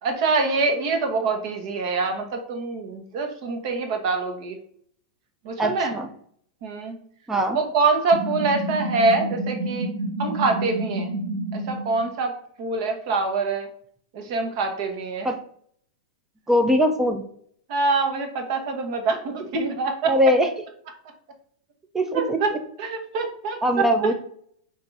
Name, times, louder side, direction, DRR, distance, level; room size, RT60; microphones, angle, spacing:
voice 1, 0.0-4.6 5.4-5.9 6.6-7.0 7.5-9.9 10.2-11.1 11.5-12.3 12.6-13.7 14.1-15.3 17.7-20.3 22.1-22.5 22.8-24.1, right 3 dB, 55° right, 5 dB, 1.0 m, -25 dB
voice 2, 5.6-6.1 7.3-7.6 15.2-15.4 16.5-17.2 20.0-20.5 21.9-22.4 23.6-24.1, equal, 10° right, 5 dB, 0.4 m, -21 dB
sound 1, 8.1-12.0, right 2 dB, 80° right, 1.1 m, -29 dB
4.6 x 2.6 x 3.9 m, 0.62 s
supercardioid pair, 145°, 3 cm